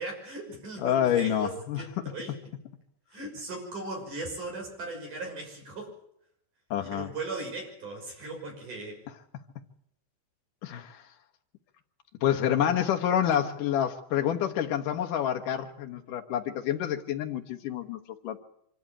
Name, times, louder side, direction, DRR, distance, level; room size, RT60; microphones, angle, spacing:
voice 1, 0.0-2.4 3.1-5.9 6.8-9.0, right 2 dB, 40° right, 1 dB, 7.1 m, -38 dB
voice 2, 0.8-1.8 6.7-7.1 10.6-11.1 12.2-18.4, left 10 dB, 75° left, 4 dB, 1.9 m, -28 dB
25.0 x 14.0 x 8.8 m, 0.74 s
omnidirectional pair, 5.4 m